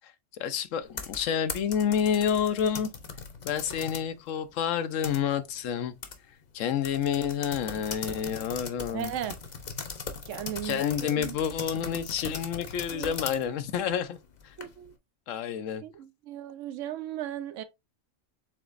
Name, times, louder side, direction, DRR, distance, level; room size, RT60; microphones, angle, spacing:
voice 1, 0.4-2.9 3.4-5.9 6.5-9.1 10.6-14.2 15.3-15.8, left 8 dB, 75° left, 1.0 m, -29 dB
sound 1, 0.8-4.1 4.5-5.6 6.0-6.2 6.4-6.5 6.8-14.9, left 5 dB, 40° left, 0.7 m, -39 dB
voice 2, 8.9-9.4 10.3-11.4 12.9-13.1 14.6-14.9 15.8-17.6, right 11 dB, 75° right, 1.0 m, -36 dB
7.0 x 2.9 x 2.5 m
omnidirectional pair, 1.3 m